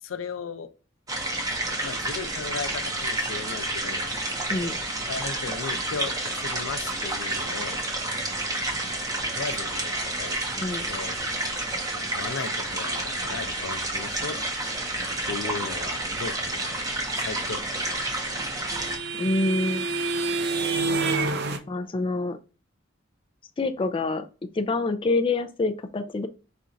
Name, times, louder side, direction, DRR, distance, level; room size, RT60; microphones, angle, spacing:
voice 1, 0.0-0.7 1.8-4.1 5.1-7.8 9.4-10.4 10.9-11.1 11.9-14.4 15.3-16.8 17.2-18.0, left 5 dB, 85° left, 0.5 m, -36 dB
sound 1, 1.1-19.0, right 2 dB, 20° right, 0.8 m, -30 dB
voice 2, 10.6-10.9 19.2-19.9 21.7-22.4 23.6-24.3 24.5-26.3, left 2 dB, 25° left, 0.4 m, -26 dB
sound 2, 17.7-21.6, right 3 dB, 55° right, 0.6 m, -28 dB
4.3 x 2.4 x 3.8 m
head